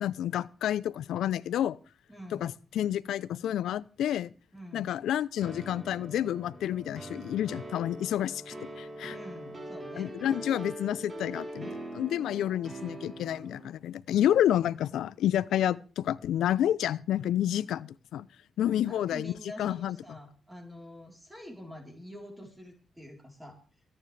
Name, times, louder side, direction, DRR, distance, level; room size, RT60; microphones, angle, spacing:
voice 1, 0.0-1.8 2.3-4.3 4.7-9.2 10.0-18.3 18.6-19.3 19.6-20.0, left 11 dB, 85° left, 0.6 m, -29 dB
voice 2, 2.1-2.5 4.5-5.0 9.1-10.5 18.7-23.6, equal, 10° right, 3.9 m, -46 dB
sound 1, 5.4-13.7, right 1 dB, 30° right, 3.6 m, -42 dB
24.0 x 9.9 x 3.4 m
cardioid pair, 90°, 0 cm